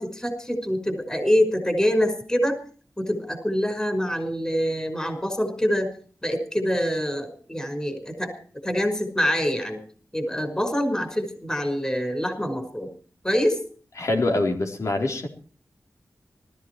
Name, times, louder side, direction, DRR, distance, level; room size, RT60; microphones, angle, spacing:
voice 1, 0.0-2.6 3.0-5.9 6.2-8.3 8.6-9.8 10.1-12.9 13.2-13.6, equal, 15° left, 6 dB, 5.3 m, -25 dB
voice 2, 14.0-15.3, left 2 dB, 65° left, 2 dB, 4.1 m, -24 dB
20.5 x 14.5 x 4.7 m, 0.42 s
wide cardioid pair, 95°, 6 cm